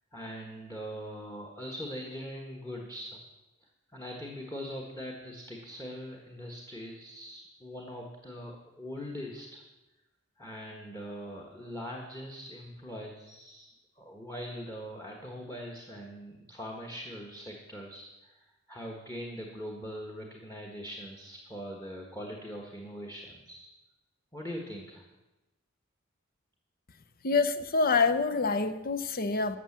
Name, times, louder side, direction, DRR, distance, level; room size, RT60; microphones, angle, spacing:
voice 1, 0.1-3.2 3.9-9.6 10.4-13.7 14.0-23.7 24.3-25.0, equal, 15° left, 1 dB, 1.4 m, -42 dB
voice 2, 27.2-29.6, left 4 dB, 45° left, 10 dB, 0.7 m, -26 dB
12.5 x 7.6 x 7.4 m, 1.0 s
head